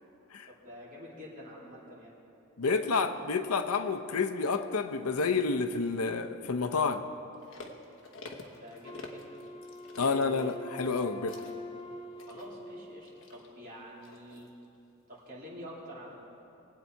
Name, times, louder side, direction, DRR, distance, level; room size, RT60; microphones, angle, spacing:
voice 1, 0.5-2.1 8.4-9.4 10.0-10.8 12.2-14.5 15.1-16.2, left 1 dB, 40° right, -6 dB, 3.1 m, -47 dB
voice 2, 2.6-7.0 10.0-11.4, left 4 dB, 85° left, 8 dB, 0.7 m, -29 dB
sound 1, 7.3-14.7 15.1-15.2, left 2 dB, 60° left, 1.2 m, -50 dB
Wind instrument woodwind instrument, 8.8-13.8, left 2 dB, 25° left, 0.7 m, -45 dB
21.0 x 8.3 x 4.6 m, 2.8 s
head